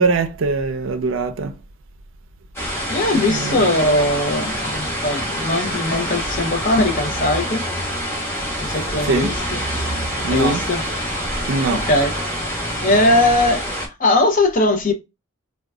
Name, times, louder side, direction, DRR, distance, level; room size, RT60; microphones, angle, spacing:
voice 1, 0.0-1.6 3.1-3.8 9.0-9.4 10.2-10.7 11.5-11.9, right 4 dB, 65° right, 0.4 m, -22 dB
sound 1, 2.5-13.9, equal, 10° left, 1.0 m, -26 dB
voice 2, 2.9-7.7 8.6-9.3 10.3-10.8 11.7-12.4 12.8-13.7 14.0-14.9, left 2 dB, 40° left, 0.6 m, -19 dB
3.7 x 2.2 x 2.3 m
head